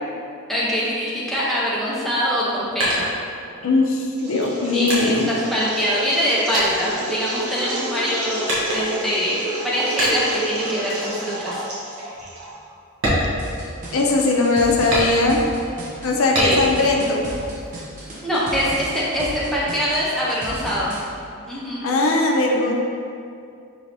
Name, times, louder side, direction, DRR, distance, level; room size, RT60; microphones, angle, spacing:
voice 1, 0.5-3.1 4.7-11.6 16.3-16.6 18.2-20.9 21.5-21.8, equal, ahead, -8 dB, 0.7 m, -24 dB
sound 1, 2.3-3.8 4.4-6.2 6.5-7.7 8.5-9.1 10.0-10.5 10.9-11.2 11.6-11.7 12.1-12.3 12.9-14.1 14.9-15.6 16.3-16.9 17.3-18.1, equal, 65° right, 1.0 m, -26 dB
voice 2, 3.6-5.3 13.9-15.4 16.0-17.3 21.8-22.7, left 2 dB, 75° left, -1 dB, 0.5 m, -19 dB
sound 2, 4.2-12.7, right 1 dB, 90° right, 0.8 m, -30 dB
sound 3, 13.4-21.0, right 1 dB, 35° right, 0.7 m, -34 dB
4.6 x 3.1 x 2.7 m, 2.5 s
head